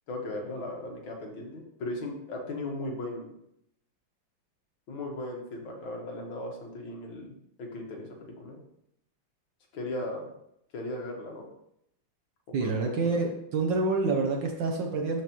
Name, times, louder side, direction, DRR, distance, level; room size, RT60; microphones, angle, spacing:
voice 1, 0.1-3.3 4.9-7.3 7.6-8.6 9.7-10.3 10.7-11.5 12.6-13.2, left 2 dB, 85° left, 1 dB, 2.2 m, -37 dB
voice 2, 12.5-15.2, right 3 dB, 70° right, 1 dB, 1.5 m, -27 dB
12.5 x 4.8 x 3.0 m, 0.77 s
omnidirectional pair, 2.1 m